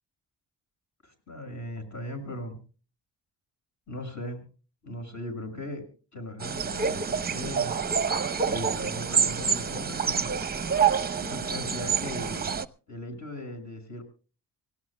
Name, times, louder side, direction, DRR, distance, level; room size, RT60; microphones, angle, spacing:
voice 1, 1.0-2.6 3.9-4.5 4.8-5.9 6.1-7.7 8.4-10.3 11.2-12.5 12.9-14.0, left 1 dB, 45° left, 5 dB, 6.6 m, -38 dB
sound 1, 6.4-12.7, right 6 dB, 25° right, 0.8 m, -27 dB
25.5 x 17.5 x 2.2 m, 0.36 s
cardioid pair, 75°, 40 cm